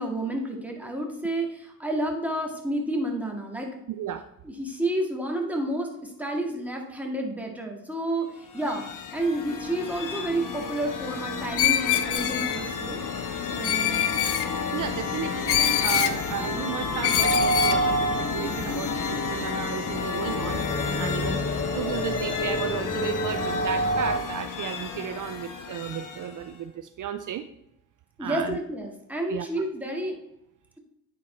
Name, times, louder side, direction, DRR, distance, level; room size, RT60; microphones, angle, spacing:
voice 1, 0.0-3.8 4.4-8.9 9.1-13.0 13.5-14.1 28.2-30.2, right 1 dB, 5° right, 0 dB, 1.8 m, -30 dB
sound 1, 8.4-26.6, left 5 dB, 55° left, 1.1 m, -32 dB
Screech, 11.6-12.6 13.6-14.5 15.5-16.2 17.0-17.8, left 11 dB, 80° left, 0.6 m, -24 dB
voice 2, 14.7-20.6 21.0-27.5 28.2-28.6 29.3-29.5, right 10 dB, 55° right, 10 dB, 0.5 m, -34 dB
sound 2, 17.2-24.2, right 1 dB, 25° left, 0.8 m, -28 dB
9.4 x 4.2 x 4.4 m, 0.79 s
cardioid pair, 75°, 38 cm